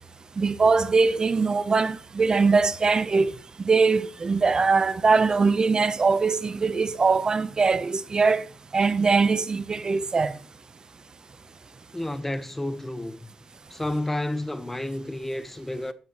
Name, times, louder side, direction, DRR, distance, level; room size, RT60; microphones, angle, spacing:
voice 1, 0.4-3.3 3.6-8.5 8.7-10.3, right 4 dB, 35° right, 0.8 m, -22 dB
voice 2, 11.9-13.2 13.7-15.9, left 1 dB, 10° left, 1.1 m, -30 dB
12.0 x 10.0 x 3.1 m
cardioid pair, 100°, 2 cm